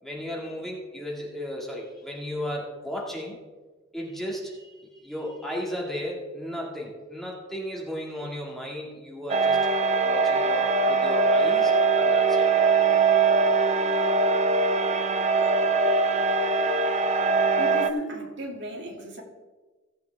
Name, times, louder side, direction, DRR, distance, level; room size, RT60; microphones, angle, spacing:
voice 1, 0.0-3.4 3.9-9.7 10.0-12.5, equal, ahead, -3 dB, 2.1 m, -35 dB
sound 1, 9.3-17.9, right 4 dB, 35° right, 0.6 m, -22 dB
voice 2, 17.6-19.2, equal, 65° right, 0 dB, 2.4 m, -35 dB
17.0 x 8.3 x 3.5 m, 1.3 s
head